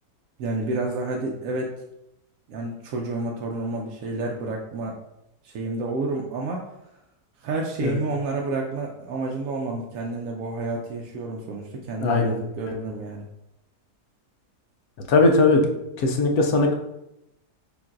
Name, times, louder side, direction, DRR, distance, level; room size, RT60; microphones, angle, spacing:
voice 1, 0.4-1.8 2.5-5.0 5.4-6.7 7.4-13.3, right 2 dB, 70° right, 0 dB, 0.8 m, -30 dB
voice 2, 12.0-12.3 15.1-15.7 16.0-16.7, left 3 dB, 70° left, 2 dB, 1.1 m, -19 dB
6.8 x 2.6 x 2.4 m, 0.86 s
omnidirectional pair, 1.7 m